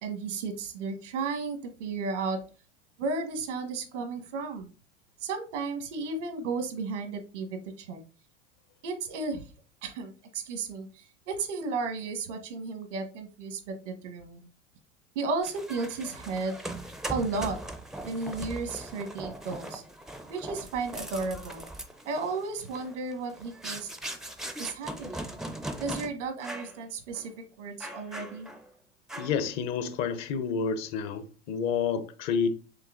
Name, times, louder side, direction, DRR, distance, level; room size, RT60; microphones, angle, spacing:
voice 1, 0.0-2.4 3.0-4.7 5.2-8.0 8.8-9.4 9.8-14.5 15.1-16.5 17.1-17.6 18.0-19.8 20.3-21.7 22.0-23.9 24.6-25.3 25.8-27.3 27.6-28.5, right 4 dB, 85° right, 1.2 m, -34 dB
sound 1, 15.4-26.1 26.4-26.8 27.1-27.3 27.8-28.7 29.1-29.5, right 1 dB, ahead, 0.4 m, -40 dB
voice 2, 29.2-32.5, left 6 dB, 50° left, 0.7 m, -29 dB
5.4 x 3.3 x 2.4 m
hypercardioid pair, 95°, 36 cm